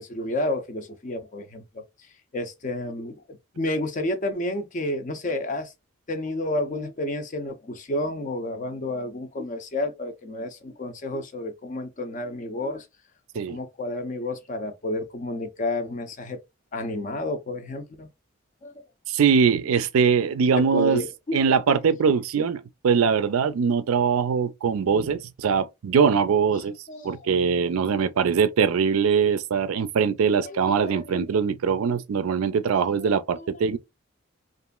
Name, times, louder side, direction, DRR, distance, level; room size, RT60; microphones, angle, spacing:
voice 1, 0.0-1.8 2.3-5.7 6.1-12.9 13.5-16.4 16.7-18.1 18.6-18.7 20.6-21.4 26.9-27.2 27.8-28.0 30.4-31.3 32.7-33.5, left 1 dB, 35° left, 0.4 m, -31 dB
voice 2, 19.1-21.0 21.3-26.7 27.0-33.8, right 6 dB, 80° right, 0.4 m, -22 dB
2.9 x 2.5 x 2.3 m
head